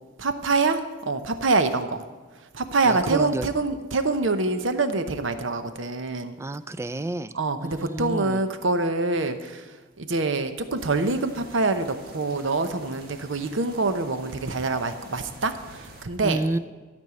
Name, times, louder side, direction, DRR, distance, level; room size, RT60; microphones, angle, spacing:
voice 1, 0.2-2.0 2.5-6.4 7.3-9.7 10.0-16.4, right 3 dB, 75° right, 9 dB, 0.9 m, -25 dB
voice 2, 2.8-3.5 6.4-7.3 7.6-8.4 16.2-16.6, right 2 dB, 15° right, 14 dB, 0.3 m, -29 dB
sound 1, 10.8-16.0, right 1 dB, 50° right, 1.5 m, -47 dB
12.5 x 5.4 x 8.3 m, 1.3 s
head